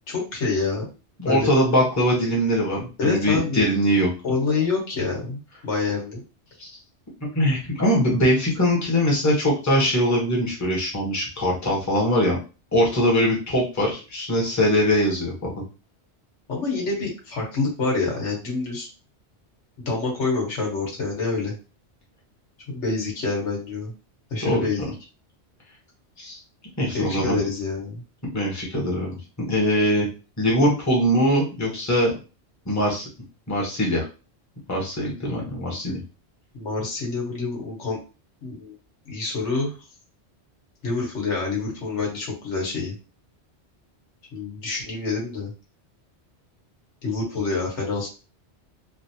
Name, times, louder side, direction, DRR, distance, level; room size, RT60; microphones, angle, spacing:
voice 1, 0.1-0.8 1.2-1.5 3.0-3.7 4.2-6.2 16.5-18.9 19.8-21.5 22.7-23.9 24.3-24.9 26.9-28.0 36.5-38.0 38.4-38.7 39.0-39.8 40.8-43.0 44.3-45.5 47.0-48.1, left 4 dB, 90° left, -2 dB, 1.6 m, -27 dB
voice 2, 1.2-4.1 6.6-6.7 7.3-12.4 12.7-15.5 24.4-24.9 26.2-26.4 26.8-27.4 28.3-29.2 29.5-30.1 30.4-32.1 32.7-33.1 33.5-34.0 34.7-36.0, equal, 15° left, -3 dB, 1.0 m, -22 dB
3.3 x 2.5 x 2.7 m, 0.32 s
omnidirectional pair, 1.2 m